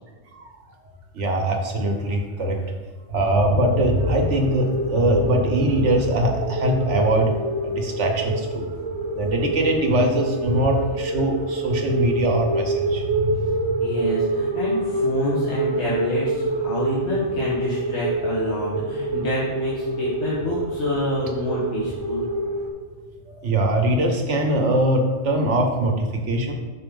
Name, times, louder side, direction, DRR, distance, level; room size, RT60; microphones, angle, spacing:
voice 1, 1.1-2.6 3.1-7.3 7.6-8.7 9.1-13.6 23.3-26.5, right 1 dB, 75° right, 3 dB, 1.4 m, -22 dB
sound 1, 3.5-22.7, right 2 dB, 25° right, 0.9 m, -27 dB
voice 2, 13.8-22.3, left 1 dB, 65° left, -8 dB, 1.7 m, -28 dB
6.3 x 4.3 x 5.3 m, 1.4 s
omnidirectional pair, 1.2 m